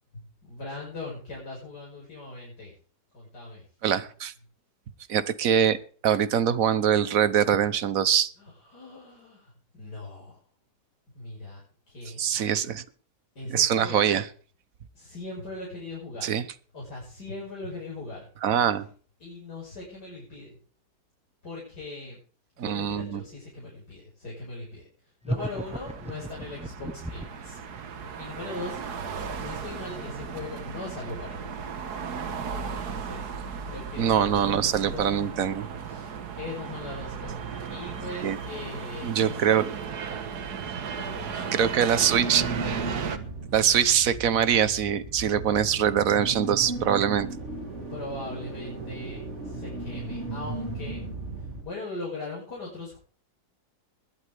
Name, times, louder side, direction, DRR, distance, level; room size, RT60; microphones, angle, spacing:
voice 1, 0.1-2.7 3.1-3.6 8.4-10.4 11.1-12.2 13.3-14.2 14.9-16.3 16.7-18.3 18.6-18.7 19.2-20.6 21.4-22.2 22.6-28.8 29.2-31.9 32.7-33.3 33.6-35.3 35.8-39.4 40.3-42.1 47.9-51.0 51.3-53.0, left 2 dB, 85° left, 6.6 m, -40 dB
voice 2, 3.8-4.3 5.1-5.8 6.0-8.3 12.2-12.8 13.5-14.2 16.2-16.4 18.4-18.9 22.6-23.2 34.0-35.7 38.2-38.4 39.0-39.7 41.5-42.5 43.5-47.3, right 9 dB, 60° right, 1.4 m, -23 dB
sound 1, 25.2-27.5, right 1 dB, 5° right, 0.5 m, -34 dB
sound 2, 25.4-43.2, right 6 dB, 75° right, 1.8 m, -36 dB
sound 3, 42.1-51.6, right 3 dB, 45° right, 3.7 m, -36 dB
21.0 x 11.5 x 3.5 m
omnidirectional pair, 1.7 m